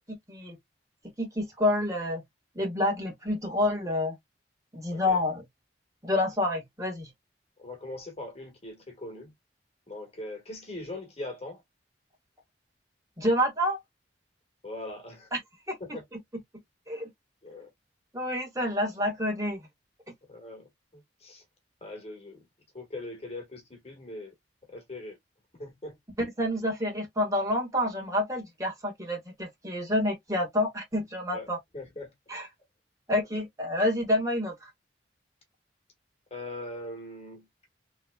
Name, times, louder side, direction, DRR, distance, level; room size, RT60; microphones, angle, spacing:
voice 1, 0.1-0.6 1.2-2.2 2.5-4.1 4.7-5.4 6.0-7.1 13.2-13.8 15.3-15.4 15.7-16.2 16.9-17.1 18.1-19.6 26.4-31.6 32.3-32.5 33.1-34.7, left 1 dB, 20° right, 1.6 m, -28 dB
voice 2, 7.6-9.3 9.9-11.6 14.6-15.3 15.8-16.0 17.4-17.7 20.3-21.4 21.8-22.4 22.7-24.3 24.7-25.2 25.6-26.0 31.3-31.5 31.7-32.1 36.3-37.4, left 2 dB, 35° left, 1.5 m, -41 dB
3.7 x 3.2 x 2.2 m
head